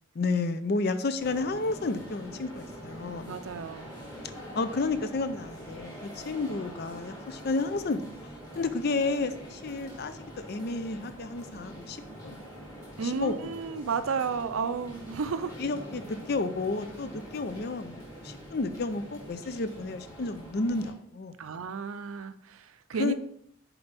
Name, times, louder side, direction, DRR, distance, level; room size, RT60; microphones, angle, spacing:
voice 1, 0.2-3.4 4.2-8.1 8.6-12.0 12.2-12.4 13.0-13.5 15.6-21.3 23.0-23.1, left 3 dB, 50° left, 11 dB, 0.5 m, -31 dB
sound 1, 1.2-20.9, equal, 20° left, 2.4 m, -44 dB
voice 2, 3.3-3.9 13.0-15.5 21.4-23.1, right 5 dB, 85° right, 11 dB, 0.5 m, -32 dB
7.0 x 4.5 x 4.0 m, 0.71 s
head